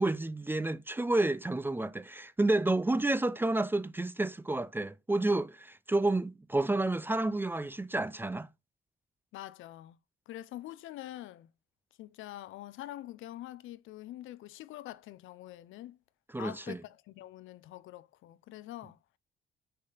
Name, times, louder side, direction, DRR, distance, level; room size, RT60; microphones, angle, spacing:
voice 1, 0.0-8.5 16.3-16.8, right 2 dB, 10° right, 0.4 m, -30 dB
voice 2, 9.3-10.0 10.3-11.5 12.0-16.0 16.4-19.2, left 14 dB, 80° left, 0.5 m, -45 dB
6.4 x 4.1 x 3.9 m
cardioid pair, 90°, 20 cm